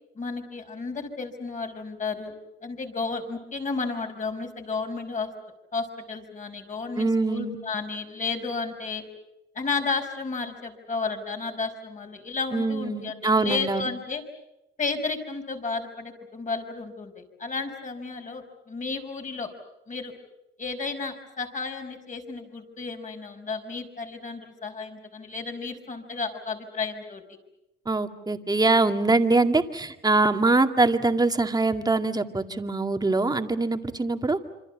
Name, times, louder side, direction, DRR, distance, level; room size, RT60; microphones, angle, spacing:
voice 1, 0.2-2.3 2.6-5.3 5.7-9.0 9.6-14.2 14.8-19.5 19.9-20.1 20.6-27.2, left 4 dB, 40° left, 4 dB, 5.4 m, -32 dB
voice 2, 7.0-7.6 12.5-13.9 27.9-34.4, right 3 dB, 20° right, 6 dB, 2.1 m, -23 dB
27.0 x 26.0 x 7.1 m, 0.89 s
cardioid pair, 90°, 20 cm